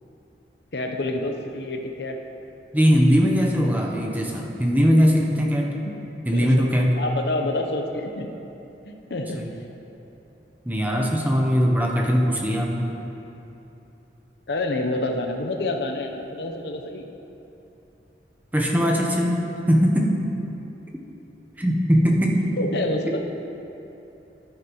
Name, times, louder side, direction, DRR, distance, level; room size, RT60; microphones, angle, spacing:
voice 1, 0.7-2.2 5.8-6.7 7.0-8.3 8.8-9.7 14.5-17.1 22.5-23.2, left 2 dB, 65° left, 4 dB, 0.7 m, -28 dB
voice 2, 2.7-5.7 6.2-6.9 9.3-9.5 10.6-12.9 18.5-20.2 21.6-22.5, equal, 10° right, -1 dB, 0.8 m, -20 dB
11.5 x 9.2 x 3.0 m, 3.0 s
head